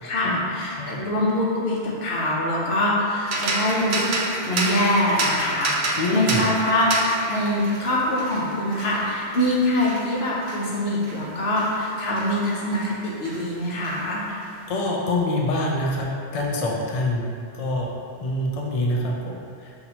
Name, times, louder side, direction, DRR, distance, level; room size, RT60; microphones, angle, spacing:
voice 1, 0.0-4.1 4.5-14.2, left 1 dB, 75° left, -5 dB, 1.1 m, -24 dB
sound 1, 3.3-12.9 13.2-14.5, right 2 dB, 85° right, 0.9 m, -30 dB
voice 2, 6.0-6.5 14.3-17.3 17.5-17.9 18.2-19.9, left 1 dB, 50° left, -2 dB, 0.5 m, -26 dB
5.7 x 2.7 x 2.8 m, 2.4 s
omnidirectional pair, 1.1 m